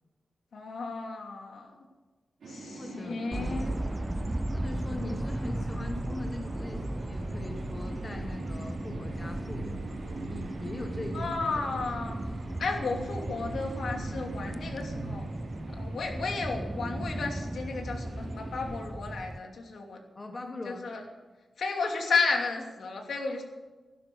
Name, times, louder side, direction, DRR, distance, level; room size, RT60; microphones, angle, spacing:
voice 1, 0.5-1.8 2.5-3.8 11.1-12.2 12.6-15.2 15.8-20.0 20.7-21.0 21.6-23.4, left 4 dB, 75° left, 2 dB, 2.8 m, -33 dB
sound 1, 2.4-18.8, right 2 dB, 90° right, 3.8 m, -44 dB
voice 2, 2.8-3.4 4.5-11.8 16.2-16.7 20.1-21.1, left 2 dB, 25° left, 3 dB, 1.3 m, -41 dB
sound 2, 3.3-19.4, right 1 dB, 10° right, 0.4 m, -36 dB
sound 3, 3.7-15.2, right 3 dB, 65° right, 3.9 m, -45 dB
15.5 x 12.0 x 6.4 m, 1.3 s
wide cardioid pair, 175°, 0 cm